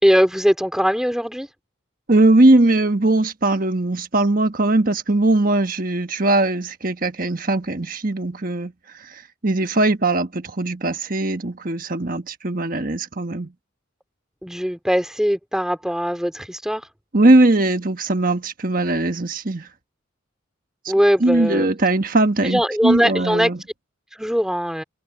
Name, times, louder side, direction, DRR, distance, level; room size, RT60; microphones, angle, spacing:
voice 1, 0.0-1.5 14.4-16.9 20.9-21.7 22.4-23.5 24.1-24.8, equal, 5° right, 2.8 m, -20 dB
voice 2, 2.1-13.5 17.1-19.7 21.2-23.6, right 2 dB, 45° right, 1.4 m, -19 dB
head